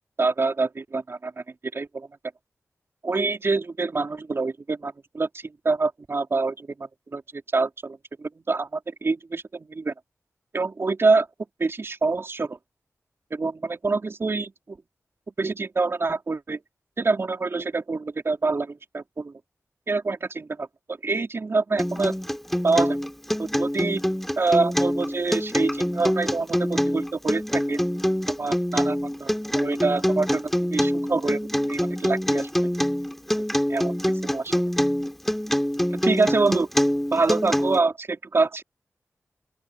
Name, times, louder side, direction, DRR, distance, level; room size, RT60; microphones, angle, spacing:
voice 1, 0.2-1.4 1.7-2.1 3.0-9.9 10.5-11.3 11.6-12.6 13.3-14.8 15.4-16.6 17.0-19.4 19.9-22.2 22.6-23.0 23.4-24.0 24.4-27.8 28.4-32.7 33.7-33.9 34.3-34.5 36.0-36.7 37.1-38.6, right 3 dB, 50° right, 4.6 m, -26 dB
Acoustic guitar, 21.8-37.8, equal, 5° left, 3.9 m, -25 dB
open air
wide cardioid pair, 100°, 5 cm